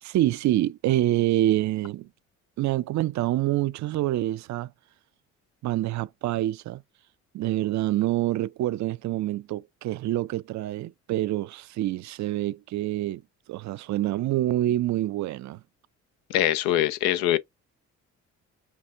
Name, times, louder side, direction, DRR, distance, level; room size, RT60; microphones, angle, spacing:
voice 1, 0.0-2.1 2.6-4.7 5.6-6.8 7.3-13.2 13.5-15.6, right 14 dB, 50° right, 0.4 m, -26 dB
voice 2, 16.3-17.4, left 12 dB, 80° left, 0.6 m, -23 dB
5.7 x 2.3 x 2.4 m
hypercardioid pair, 50°, 38 cm